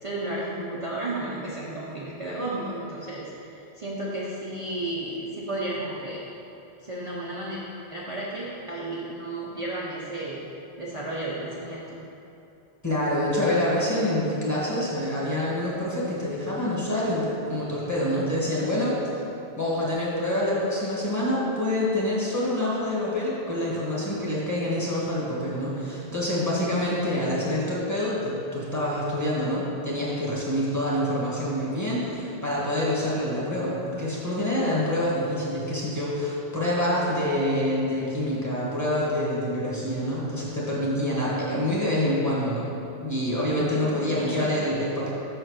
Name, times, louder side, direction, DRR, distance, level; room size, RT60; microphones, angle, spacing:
voice 1, 0.0-6.2 6.8-7.6 7.9-10.4 10.8-11.9 43.7-44.6, right 2 dB, 35° right, -7 dB, 0.8 m, -33 dB
voice 2, 12.8-19.0 19.6-42.7 43.0-45.1, left 1 dB, 15° left, -7 dB, 1.7 m, -26 dB
6.3 x 4.5 x 6.4 m, 2.9 s
omnidirectional pair, 1.1 m